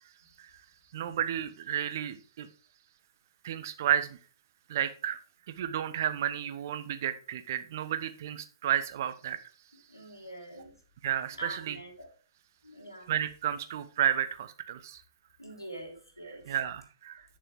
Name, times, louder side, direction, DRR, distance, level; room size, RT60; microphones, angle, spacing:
voice 1, 0.9-2.5 3.4-4.2 4.7-5.2 5.5-9.4 11.0-11.8 13.1-15.0 16.5-17.2, right 10 dB, 45° right, 11 dB, 0.9 m, -32 dB
voice 2, 9.9-10.7 11.4-12.1 12.6-13.1 15.4-16.5, right 1 dB, 90° left, -1 dB, 3.3 m, -45 dB
8.9 x 6.7 x 3.5 m, 0.38 s
figure-of-eight pair, 120°, 2 cm